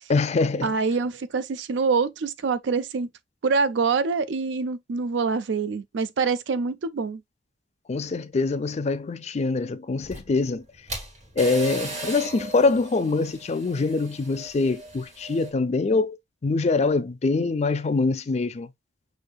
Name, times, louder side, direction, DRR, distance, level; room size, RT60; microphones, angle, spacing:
voice 1, 0.1-0.7 7.9-10.6 11.4-16.2 16.4-18.7, left 3 dB, 35° left, 0.4 m, -24 dB
voice 2, 0.6-3.1 3.4-7.2, right 4 dB, 80° right, 0.4 m, -25 dB
sound 1, 10.0-15.5, right 1 dB, 40° right, 1.7 m, -37 dB
6.3 x 2.7 x 2.2 m
head